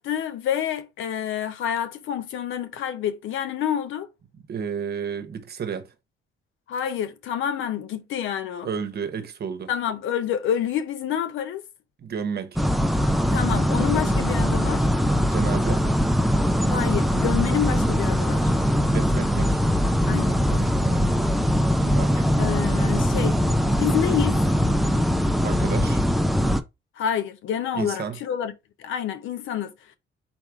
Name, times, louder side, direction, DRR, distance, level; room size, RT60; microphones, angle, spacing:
voice 1, 0.0-4.1 6.7-8.7 9.7-11.6 13.3-14.9 16.7-18.5 20.1-20.8 22.4-23.4 23.8-24.4 27.0-28.5 28.8-29.7, left 9 dB, 80° left, 0.7 m, -28 dB
voice 2, 4.3-5.9 8.6-9.7 12.0-12.6 15.2-15.8 18.6-19.6 20.8-21.4 21.8-22.5 25.4-26.0 27.7-28.2, right 7 dB, 55° right, 0.9 m, -32 dB
sound 1, 12.6-26.6, equal, ahead, 0.5 m, -21 dB
4.3 x 2.4 x 4.4 m
cardioid pair, 90°, 20 cm